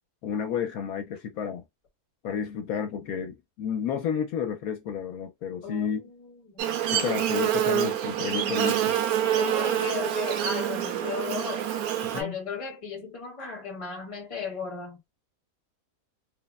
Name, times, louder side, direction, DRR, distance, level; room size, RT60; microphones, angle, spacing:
voice 1, 0.2-1.6 2.2-6.0 6.9-9.0 12.1-12.3, left 7 dB, 75° left, 1.0 m, -31 dB
voice 2, 5.6-6.7 9.4-11.7 12.1-15.0, left 5 dB, 25° left, 0.9 m, -36 dB
Buzz, 6.6-12.2, right 11 dB, 75° right, 1.0 m, -26 dB
3.2 x 2.1 x 2.3 m
omnidirectional pair, 1.6 m